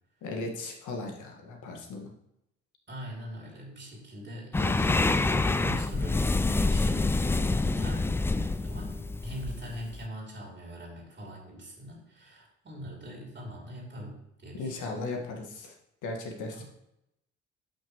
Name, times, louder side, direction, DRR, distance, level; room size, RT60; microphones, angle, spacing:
voice 1, 0.2-2.1 14.6-15.7 16.0-16.6, left 3 dB, 55° left, 3 dB, 1.8 m, -37 dB
voice 2, 2.9-8.1 8.6-15.0 16.5-16.6, equal, 30° right, -2 dB, 3.1 m, -42 dB
sound 1, 4.5-10.0, left 3 dB, 5° left, 0.3 m, -27 dB
12.0 x 6.0 x 3.1 m, 0.82 s
figure-of-eight pair, 45°, 36 cm